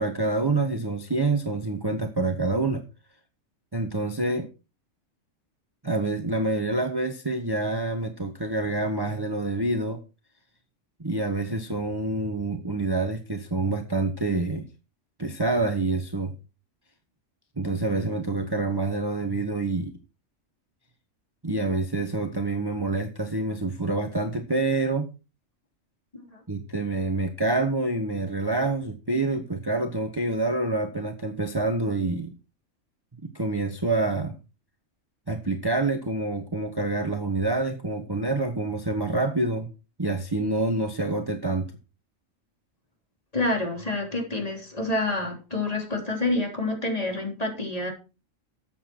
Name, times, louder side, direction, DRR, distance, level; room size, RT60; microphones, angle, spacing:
voice 1, 0.0-2.8 3.7-4.5 5.8-10.0 11.0-14.7 15.2-16.3 17.6-19.9 21.4-25.1 26.5-32.3 33.2-34.4 35.3-39.7 40.0-41.7, right 2 dB, 20° right, 6 dB, 1.1 m, -27 dB
voice 2, 43.3-47.9, left 2 dB, 30° left, 1 dB, 3.6 m, -28 dB
13.0 x 8.3 x 4.5 m, 0.31 s
omnidirectional pair, 1.4 m